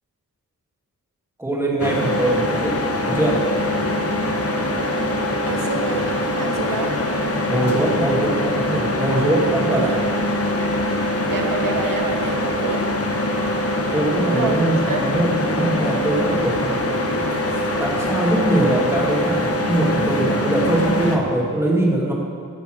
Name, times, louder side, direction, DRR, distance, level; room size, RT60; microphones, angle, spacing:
voice 1, 1.4-3.5 7.5-10.0 13.9-17.0 17.8-22.1, right 1 dB, 10° right, -3 dB, 2.2 m, -22 dB
sound 1, 1.8-21.2, left 1 dB, 45° left, 1.1 m, -23 dB
voice 2, 5.4-7.0 10.9-13.2 14.3-14.5 14.9-15.1, right 3 dB, 80° right, 3 dB, 1.0 m, -28 dB
11.0 x 6.9 x 6.3 m, 2.1 s
wide cardioid pair, 80°, 33 cm